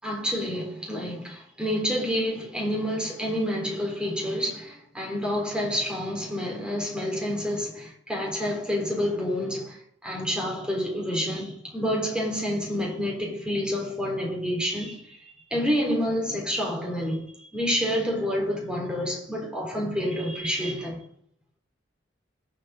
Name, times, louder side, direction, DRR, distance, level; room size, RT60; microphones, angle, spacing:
voice 1, 0.0-21.0, equal, 5° right, 4.1 m, -28 dB
20.5 x 7.9 x 3.9 m
head